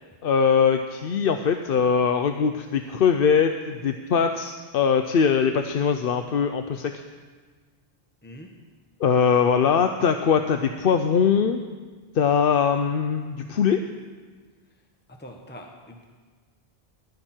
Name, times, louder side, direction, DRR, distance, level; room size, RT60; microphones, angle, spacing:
voice 1, 0.2-6.9 9.0-11.6 12.1-13.8, left 6 dB, 65° left, 7 dB, 0.8 m, -21 dB
voice 2, 15.2-16.0, equal, 10° left, 1 dB, 1.2 m, -43 dB
19.0 x 12.0 x 4.5 m, 1.5 s
omnidirectional pair, 1.0 m